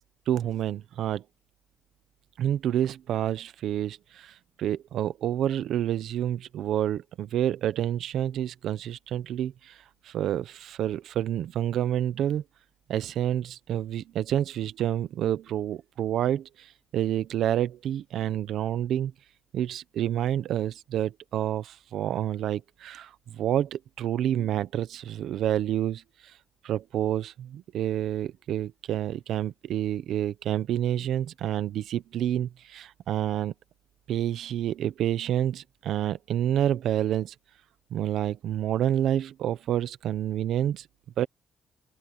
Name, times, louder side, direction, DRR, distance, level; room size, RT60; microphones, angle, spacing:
voice 1, 0.3-1.2 2.4-4.3 4.6-9.7 10.1-12.4 12.9-16.7 16.9-19.1 19.5-26.0 26.6-33.5 34.1-37.3 37.9-40.8 41.2-41.3, right 11 dB, 75° right, 1.0 m, -28 dB
open air
cardioid pair, 90°, 0 cm